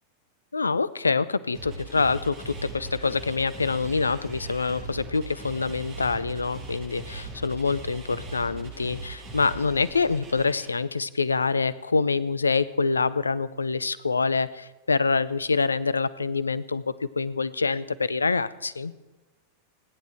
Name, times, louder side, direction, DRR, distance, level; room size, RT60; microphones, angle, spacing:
voice 1, 0.5-18.9, left 4 dB, 75° left, 18 dB, 0.7 m, -26 dB
sound 1, 1.5-10.7, right 2 dB, 35° right, 7.5 m, -39 dB
29.5 x 10.5 x 4.5 m, 1.2 s
figure-of-eight pair, 90°, 0 cm